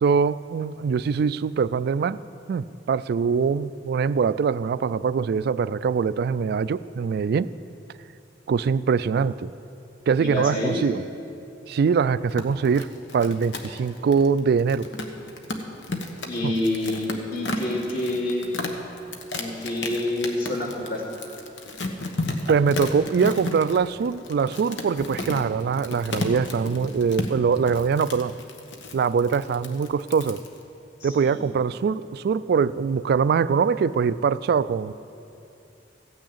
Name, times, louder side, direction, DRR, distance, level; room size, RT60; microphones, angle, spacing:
voice 1, 0.0-2.2 2.5-7.5 8.5-9.5 10.1-11.0 11.7-12.9 13.1-14.9 16.4-16.5 22.5-28.3 28.9-30.4 31.0-34.9, right 6 dB, 60° right, 16 dB, 0.3 m, -23 dB
voice 2, 10.2-10.8 16.2-18.5 19.3-21.0 31.0-31.6, left 1 dB, 55° left, -4 dB, 2.9 m, -28 dB
sound 1, 12.2-30.6, left 2 dB, 85° left, 1.1 m, -33 dB
15.0 x 6.3 x 8.6 m, 2.7 s
head